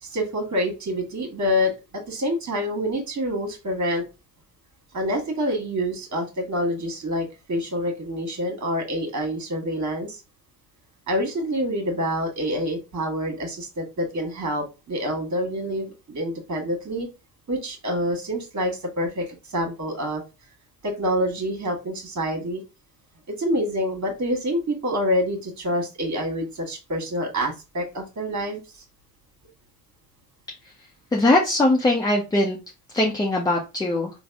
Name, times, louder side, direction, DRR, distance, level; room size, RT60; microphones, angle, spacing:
voice 1, 0.0-4.0 4.9-10.2 11.1-17.1 17.5-20.2 20.8-22.6 23.4-28.8, equal, 35° right, 3 dB, 1.5 m, -27 dB
voice 2, 31.1-32.6 32.9-34.1, left 2 dB, 10° left, 0 dB, 0.5 m, -21 dB
3.4 x 2.0 x 3.4 m, 0.28 s
hypercardioid pair, 65°, 47 cm